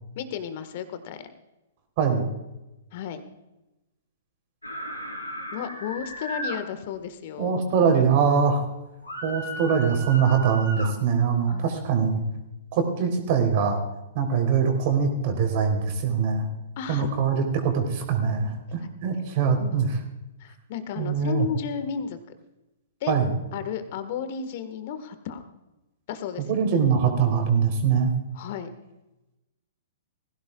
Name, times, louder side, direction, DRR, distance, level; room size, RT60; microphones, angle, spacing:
voice 1, 0.1-1.2 2.9-3.2 5.5-7.6 11.4-11.9 16.8-17.1 19.1-19.3 19.6-19.8 20.4-22.2 23.0-23.1 23.5-25.4 26.1-26.5 28.3-28.7, left 8 dB, 45° left, 10 dB, 1.6 m, -33 dB
voice 2, 2.0-2.3 7.4-8.7 9.2-12.2 12.7-13.8 14.1-16.5 16.9-19.9 21.0-21.5 23.1-23.3 26.5-28.1, right 6 dB, 45° right, 4 dB, 3.5 m, -23 dB
sound 1, 4.6-6.6 9.0-10.9, equal, 90° left, 3.5 m, -35 dB
20.0 x 16.0 x 2.4 m, 0.99 s
figure-of-eight pair, 110°, 0 cm